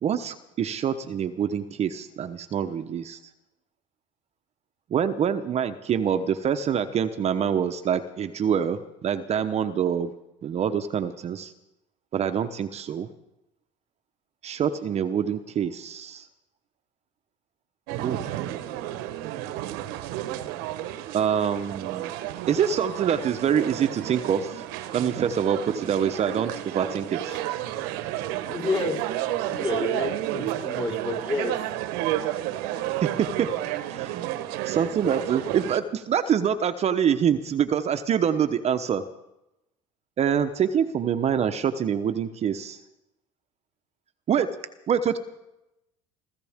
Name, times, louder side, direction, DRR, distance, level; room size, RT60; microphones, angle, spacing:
voice 1, 0.0-3.2 4.9-10.1 10.4-11.5 12.1-13.1 14.4-16.3 18.0-18.4 21.1-22.1 22.5-24.6 24.9-27.3 33.0-33.5 33.9-34.4 34.6-39.0 40.2-42.8 44.3-44.6 44.9-45.2, right 8 dB, 40° right, 9 dB, 1.0 m, -25 dB
sound 1, 17.9-35.8, right 13 dB, 70° right, 1.2 m, -31 dB
voice 2, 28.5-29.0 29.4-31.6, left 3 dB, 30° left, -1 dB, 4.5 m, -30 dB
26.0 x 15.0 x 3.7 m, 0.87 s
supercardioid pair, 90°, 17 cm